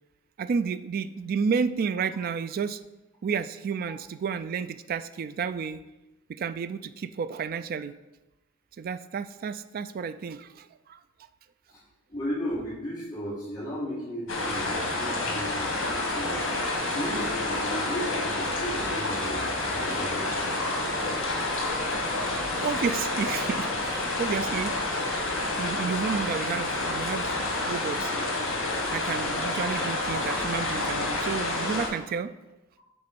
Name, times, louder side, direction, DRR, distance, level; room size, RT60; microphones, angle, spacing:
voice 1, 0.4-2.8 3.2-5.8 6.3-8.0 8.8-11.0 22.6-24.8 25.6-28.1 28.9-32.3, right 6 dB, 45° right, 12 dB, 0.3 m, -31 dB
voice 2, 12.1-16.5 16.9-21.1, equal, 20° left, -14 dB, 2.6 m, -35 dB
sound 1, 14.3-31.9, left 2 dB, 70° left, 1.8 m, -29 dB
6.7 x 4.0 x 5.2 m, 1.0 s
head